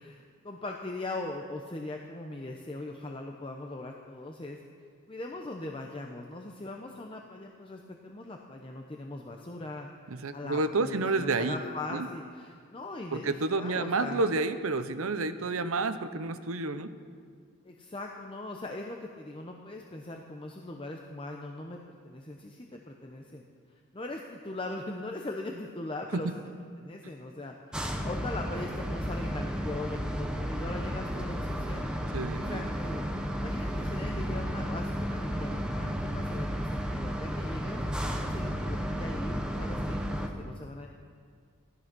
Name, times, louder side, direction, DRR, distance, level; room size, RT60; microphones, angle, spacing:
voice 1, 0.0-4.6 5.1-14.2 17.6-23.4 23.9-26.3 26.8-37.8 38.2-40.9, left 2 dB, 25° left, 1 dB, 0.8 m, -40 dB
voice 2, 10.1-11.6 11.9-12.1 13.1-16.9 26.1-26.3 27.0-27.1 32.1-32.6, right 3 dB, 85° right, 11 dB, 0.8 m, -30 dB
sound 1, 27.7-40.3, equal, 5° right, 0.9 m, -33 dB
16.5 x 12.5 x 6.1 m, 2.1 s
head